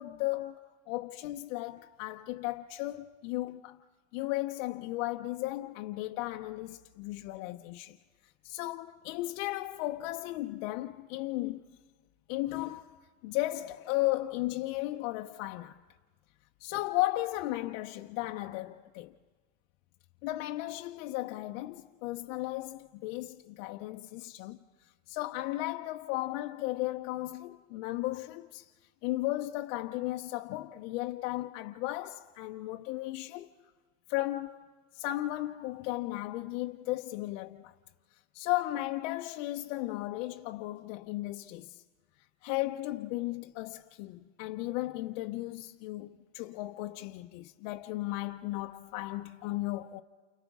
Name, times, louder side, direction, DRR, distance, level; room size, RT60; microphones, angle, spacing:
voice 1, 0.0-3.8 4.1-8.0 8.4-11.6 12.3-13.0 13.2-15.8 16.6-19.1 20.2-24.6 25.1-28.7 29.0-33.5 34.1-34.7 34.9-37.7 38.3-41.8 42.4-50.0, left 17 dB, 70° left, 0.7 m, -35 dB
29.5 x 29.0 x 3.6 m
supercardioid pair, 130°, 40 cm